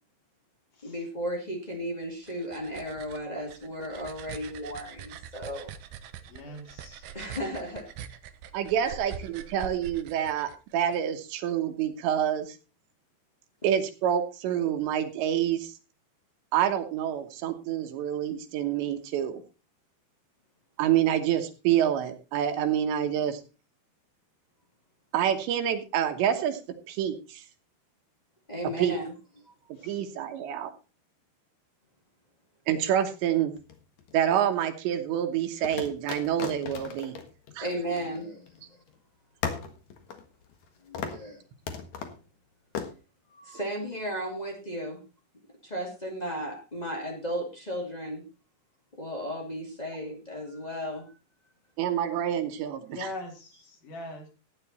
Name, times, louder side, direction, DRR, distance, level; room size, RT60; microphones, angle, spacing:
voice 1, 0.8-5.7 6.4-6.6 7.1-7.9 8.8-8.9 28.5-29.0 29.4-29.5 37.6-38.8 40.8-41.4 43.3-45.0 45.6-48.2 49.0-51.0, equal, 85° left, -1 dB, 0.3 m, -35 dB
sound 1, 2.0-11.0, right 8 dB, 90° right, 2.0 m, -44 dB
voice 2, 6.3-7.1 29.8-30.1 52.9-54.3, left 2 dB, 50° left, 2 dB, 3.9 m, -41 dB
voice 3, 8.5-12.6 13.6-15.7 16.5-19.4 20.8-23.4 25.1-26.6 26.9-27.4 28.8-29.0 29.8-30.7 32.7-33.5 34.1-37.2 37.6-37.7 51.8-53.1, right 10 dB, 75° right, 7 dB, 3.2 m, -27 dB
sound 2, 33.6-34.5 35.6-38.6 38.9-39.0 39.4-40.7 40.9-41.3 41.7-42.2 42.8-42.9, left 6 dB, 65° left, 1.8 m, -37 dB
14.5 x 9.7 x 4.1 m, 0.31 s
omnidirectional pair, 5.5 m